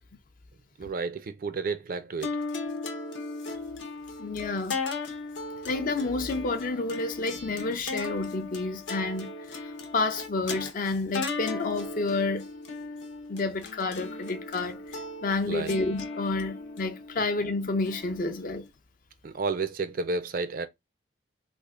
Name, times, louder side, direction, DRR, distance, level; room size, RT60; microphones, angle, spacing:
voice 1, 0.8-2.4 15.5-15.8 19.2-20.7, right 4 dB, 50° right, 0.4 m, -31 dB
sound 1, 2.2-18.7, left 3 dB, 80° left, 0.9 m, -37 dB
voice 2, 4.2-4.8 5.6-9.6 9.9-12.5 13.3-18.7, left 3 dB, 45° left, 0.5 m, -30 dB
3.4 x 2.1 x 3.6 m
head